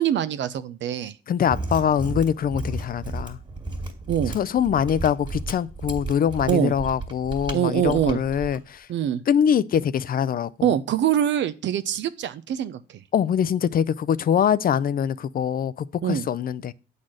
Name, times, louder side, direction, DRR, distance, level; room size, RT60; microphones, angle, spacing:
voice 1, 0.0-1.1 4.1-4.4 6.5-6.7 7.5-8.2 8.9-9.2 10.6-13.0 16.0-16.2, right 10 dB, 70° right, 0.6 m, -24 dB
voice 2, 1.3-3.4 4.3-8.9 9.3-10.7 13.1-16.7, left 8 dB, 50° left, 0.5 m, -23 dB
Mechanisms, 1.4-8.6, right 2 dB, 20° right, 1.9 m, -33 dB
8.6 x 4.1 x 6.3 m
cardioid pair, 90°, 20 cm